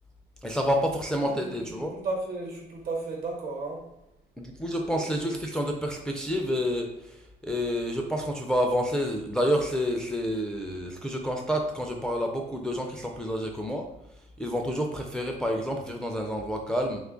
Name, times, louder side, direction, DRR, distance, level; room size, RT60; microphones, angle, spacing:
voice 1, 0.4-2.0 4.4-13.9 14.4-17.0, equal, 5° left, 2 dB, 0.3 m, -29 dB
voice 2, 1.2-3.9 4.8-5.3, right 3 dB, 65° right, 0 dB, 1.0 m, -35 dB
2.8 x 2.3 x 3.7 m, 0.89 s
cardioid pair, 110°, 17 cm